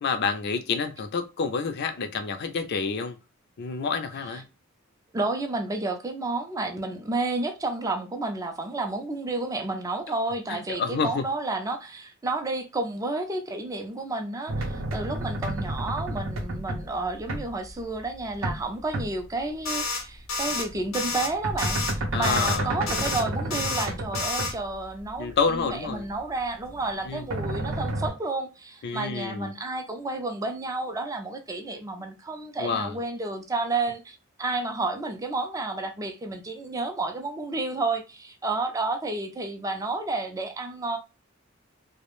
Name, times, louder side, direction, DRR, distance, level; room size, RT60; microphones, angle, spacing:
voice 1, 0.0-3.2 3.6-4.4 10.5-11.2 22.1-22.7 25.2-26.1 27.0-27.2 28.8-29.5 32.6-32.9, left 5 dB, 55° left, 0.4 m, -28 dB
voice 2, 5.1-41.0, right 2 dB, 15° right, 0.4 m, -31 dB
sound 1, 14.5-18.6 18.9-19.4 20.2-26.2 26.6-28.1, right 1 dB, 75° right, 0.6 m, -31 dB
sound 2, 19.7-20.0 20.3-20.6 20.9-21.3 21.6-21.9 22.2-22.6 22.9-23.2 23.5-23.9 24.2-24.5, left 3 dB, 80° left, 0.7 m, -29 dB
2.3 x 2.0 x 3.0 m
head